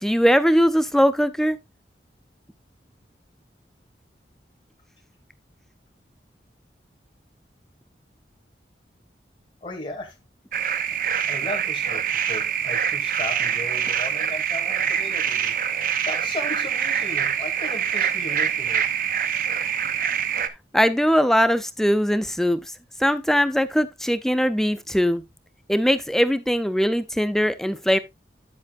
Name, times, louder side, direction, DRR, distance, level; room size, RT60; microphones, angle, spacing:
voice 1, 0.0-1.6 12.2-12.3 19.6-19.7 20.7-22.6 23.0-25.2 25.7-28.0, equal, ahead, 0.5 m, -20 dB
voice 2, 9.6-10.1 11.3-12.0 12.3-18.8, left 2 dB, 30° left, 2.7 m, -36 dB
sound 1, 10.5-20.5, right 8 dB, 50° right, 0.8 m, -25 dB
9.8 x 8.2 x 2.5 m
head